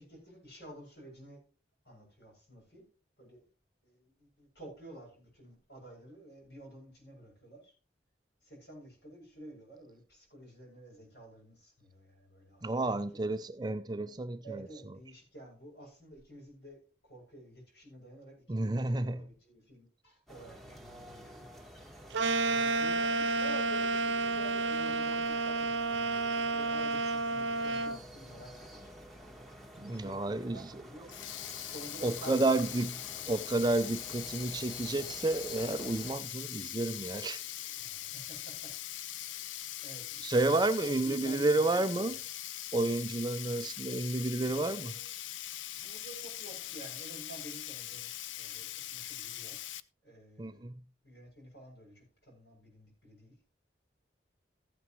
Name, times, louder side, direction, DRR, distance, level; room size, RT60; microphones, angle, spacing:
voice 1, 0.0-1.4 1.8-2.8 3.2-3.5 3.8-7.7 8.4-12.9 13.1-13.2 14.4-16.8 17.0-22.1 22.4-29.0 29.7-31.1 31.6-33.2 37.8-38.7 39.1-42.1 44.4-45.1 45.8-48.1 48.4-49.6 50.0-50.7 51.0-53.4, right 1 dB, 65° left, 7.7 m, -51 dB
voice 2, 12.6-14.7 18.5-19.2 29.8-30.7 32.0-32.9 33.3-37.4 40.2-42.2 42.7-44.9 50.4-50.7, right 2 dB, 20° right, 0.4 m, -31 dB
sound 1, 20.3-36.2, equal, ahead, 1.3 m, -51 dB
sound 2, 22.1-28.0, right 3 dB, 85° right, 0.7 m, -30 dB
Sink (filling or washing), 31.1-49.8, left 13 dB, 90° left, 0.5 m, -42 dB
15.5 x 9.3 x 3.1 m
head